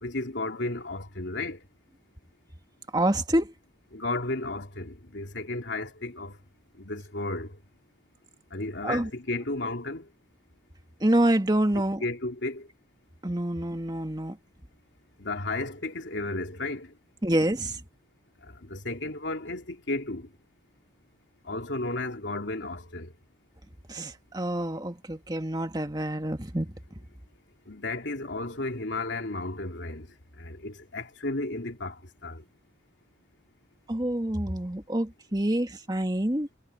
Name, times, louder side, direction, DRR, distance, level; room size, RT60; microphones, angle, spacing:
voice 1, 0.0-1.6 3.9-6.4 6.8-7.6 8.5-10.1 12.0-12.7 15.2-16.9 18.4-20.3 21.5-23.1 27.7-30.1 30.4-32.4, left 2 dB, 80° left, 2.9 m, -33 dB
voice 2, 2.9-3.5 8.8-9.1 11.0-12.0 13.2-14.4 17.2-17.8 23.9-26.7 33.9-36.5, right 1 dB, 20° right, 2.0 m, -27 dB
head